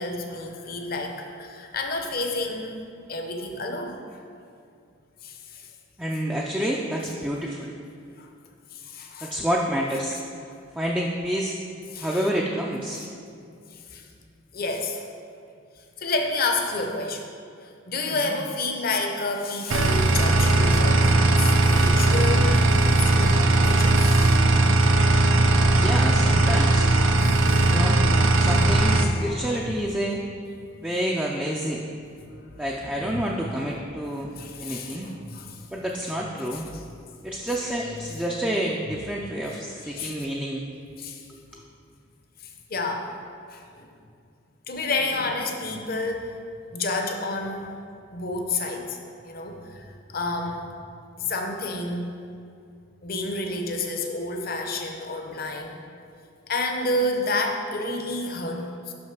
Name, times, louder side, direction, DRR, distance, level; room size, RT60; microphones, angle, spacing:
voice 1, 0.0-4.2 5.2-5.7 8.2-8.3 8.7-9.3 11.9-12.2 13.7-14.1 14.5-15.0 16.0-17.3 17.6-24.3 27.2-27.7 33.0-33.2 34.4-35.7 39.8-40.1 41.0-41.2 42.7-43.1 43.5-43.9 44.7-46.3 46.7-47.7 48.1-49.0 49.2-50.7 51.2-52.1 53.0-55.8 56.5-58.9, left 2 dB, 45° left, 3 dB, 0.7 m, -30 dB
voice 2, 6.0-7.7 9.2-10.2 10.8-11.6 12.0-13.0 18.1-18.4 25.8-26.9 27.7-28.0 28.4-30.2 30.8-31.8 32.6-34.3 34.6-35.1 35.7-36.7 37.2-40.6 41.3-41.6, equal, 5° right, -2 dB, 0.4 m, -28 dB
sound 1, 19.7-29.0, right 2 dB, 75° right, 0.5 m, -19 dB
6.2 x 5.5 x 5.9 m, 2.4 s
head